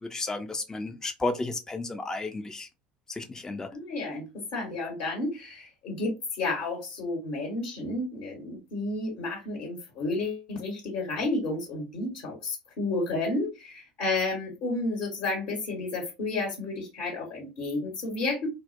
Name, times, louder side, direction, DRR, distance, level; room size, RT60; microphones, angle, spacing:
voice 1, 0.0-2.7 3.1-3.7, left 2 dB, 15° left, 0.4 m, -33 dB
voice 2, 3.7-4.2 4.5-18.5, left 2 dB, 60° left, 1.1 m, -31 dB
2.4 x 2.1 x 2.5 m
hypercardioid pair, 70°, 4 cm